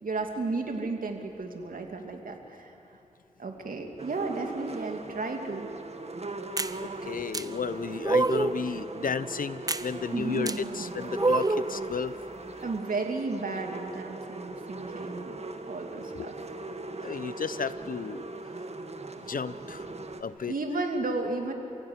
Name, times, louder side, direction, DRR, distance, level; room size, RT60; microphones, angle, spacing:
voice 1, 0.0-2.7 3.4-5.7 10.1-10.9 12.6-15.3 15.7-16.3 20.5-21.5, right 3 dB, 80° right, 3 dB, 2.7 m, -33 dB
sound 1, 4.0-20.2, right 3 dB, 50° right, 1.8 m, -39 dB
sound 2, 6.6-6.8 7.3-7.5 8.0-8.6 9.7-9.9 10.5-10.6 11.2-11.7, right 2 dB, 25° right, 0.9 m, -25 dB
voice 2, 6.8-12.1 16.1-16.3 17.0-18.3 19.3-19.9 20.2-20.5, left 6 dB, 80° left, 15 dB, 0.8 m, -33 dB
29.0 x 16.0 x 9.7 m, 2.7 s
cardioid pair, 55°, 14 cm